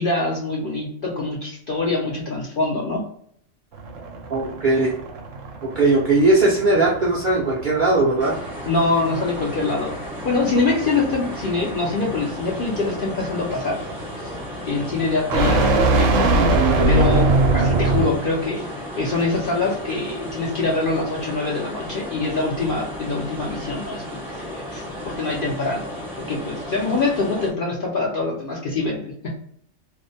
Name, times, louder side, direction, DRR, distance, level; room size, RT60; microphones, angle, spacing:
voice 1, 0.0-3.0 8.7-9.9 10.2-13.8 14.2-14.4 14.7-16.3 16.9-25.8 26.3-29.1, left 3 dB, 60° left, -3 dB, 0.5 m, -24 dB
sound 1, 3.7-18.3, right 2 dB, 75° right, 0.9 m, -23 dB
voice 2, 4.3-4.9 5.6-8.3, right 2 dB, 60° right, -5 dB, 0.5 m, -19 dB
sound 2, 8.2-27.5, equal, ahead, 0.5 m, -34 dB
2.5 x 2.0 x 2.6 m, 0.64 s
omnidirectional pair, 1.4 m